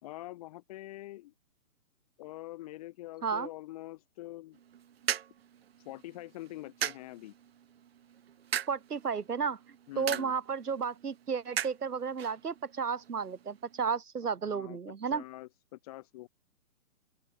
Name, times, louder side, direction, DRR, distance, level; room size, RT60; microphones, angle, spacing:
voice 1, 0.0-1.3 2.2-4.6 5.8-7.3 9.9-10.3 14.5-16.3, left 17 dB, 25° left, 3.2 m, -45 dB
sound 1, 4.5-14.0, right 9 dB, 40° right, 3.9 m, -40 dB
voice 2, 8.7-9.6 10.0-15.2, right 6 dB, 90° right, 2.4 m, -33 dB
open air
hypercardioid pair, 165°, 45 cm